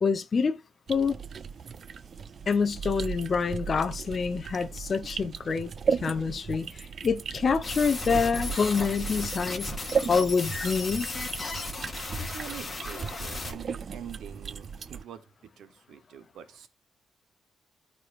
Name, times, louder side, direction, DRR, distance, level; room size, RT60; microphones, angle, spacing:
voice 1, 0.0-0.6 0.9-1.2 2.5-9.7 10.1-11.1, left 5 dB, 40° left, 0.6 m, -27 dB
sound 1, 0.9-15.0, right 6 dB, 45° right, 0.3 m, -36 dB
sound 2, 7.6-13.5, left 3 dB, 20° left, 2.6 m, -36 dB
voice 2, 12.2-15.2 15.6-16.7, right 9 dB, 85° right, 0.9 m, -45 dB
13.5 x 4.6 x 2.4 m
cardioid pair, 130°, 0 cm